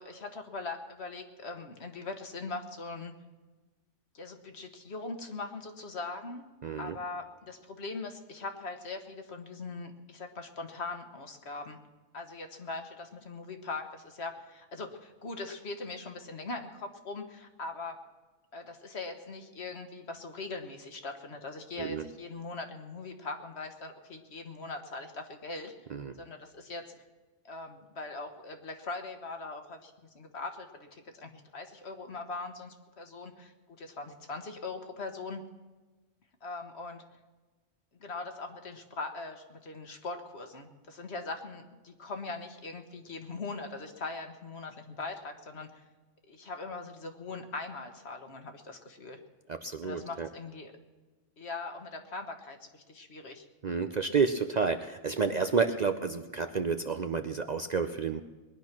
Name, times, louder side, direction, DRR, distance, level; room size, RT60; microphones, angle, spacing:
voice 1, 0.0-3.1 4.1-6.5 6.8-11.8 12.1-18.0 18.5-25.7 26.2-26.9 27.4-35.4 36.4-37.0 38.0-45.8 46.3-49.2 49.8-50.7 51.4-53.4, left 3 dB, 60° left, 6 dB, 1.5 m, -41 dB
voice 2, 6.6-7.0 21.8-22.0 25.9-26.1 49.5-50.3 53.6-58.2, right 5 dB, 50° right, 8 dB, 0.6 m, -30 dB
20.5 x 10.5 x 6.0 m, 1.2 s
omnidirectional pair, 1.2 m